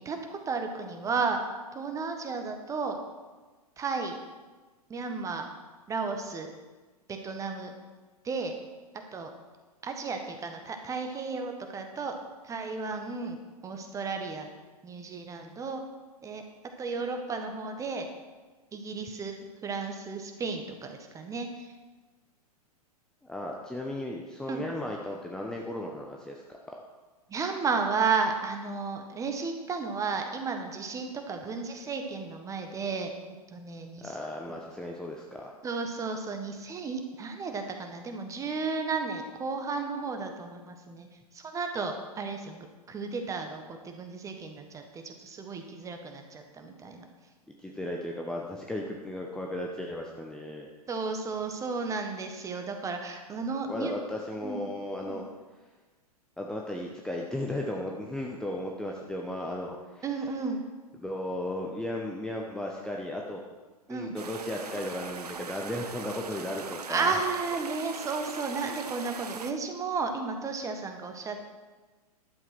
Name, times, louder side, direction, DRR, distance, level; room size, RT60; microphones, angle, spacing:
voice 1, 0.0-1.4 1.7-3.0 3.8-4.2 4.9-5.5 5.9-6.5 7.1-7.7 8.2-8.5 9.1-9.3 9.8-12.2 12.4-14.5 14.8-15.8 16.2-16.4 16.8-18.1 18.7-21.7 24.5-24.6 27.3-33.1 33.5-34.2 35.6-41.1 41.3-47.1 50.9-53.9 54.4-54.7 55.0-55.2 60.0-60.6 63.9-64.1 66.9-71.4, right 4 dB, 15° right, 5 dB, 1.3 m, -33 dB
voice 2, 23.2-26.6 34.0-35.6 47.6-50.7 53.7-55.2 56.4-60.0 61.0-63.4 63.9-67.2, left 1 dB, 5° left, -1 dB, 0.9 m, -35 dB
sound 1, 64.2-69.5, right 5 dB, 75° right, 0.8 m, -40 dB
11.5 x 7.5 x 6.0 m, 1.3 s
figure-of-eight pair, 105°, 20 cm